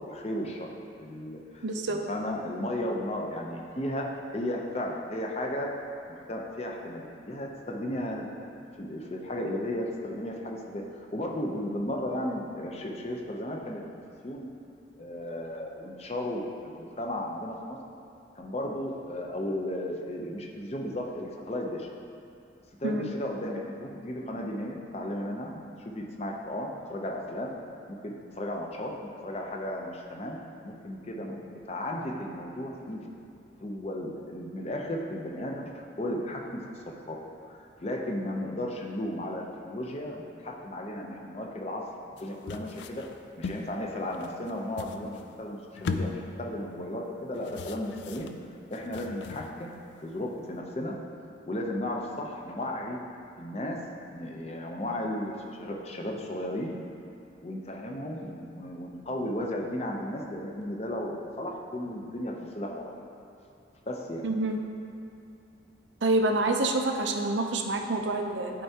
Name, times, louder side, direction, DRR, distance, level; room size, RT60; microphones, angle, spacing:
voice 1, 0.0-5.7 6.1-8.4 8.8-14.5 15.0-16.4 16.8-17.8 18.4-21.9 22.8-27.5 27.9-30.4 30.6-31.4 31.7-33.1 33.6-37.2 37.5-41.8 42.2-43.1 43.4-48.3 48.7-49.7 50.0-51.0 51.5-53.0 53.4-53.8 54.1-56.7 57.4-62.9 63.9-64.2, left 1 dB, 35° left, 0 dB, 0.6 m, -35 dB
voice 2, 1.6-2.0 22.8-23.1 64.2-64.6 66.0-68.6, right 2 dB, 75° right, 4 dB, 0.6 m, -27 dB
sound 1, 42.2-43.7 44.1-45.4 45.8-46.7 47.3-49.8 50.2-50.5, left 4 dB, 70° left, 0.3 m, -38 dB
11.0 x 4.6 x 2.8 m, 2.6 s
head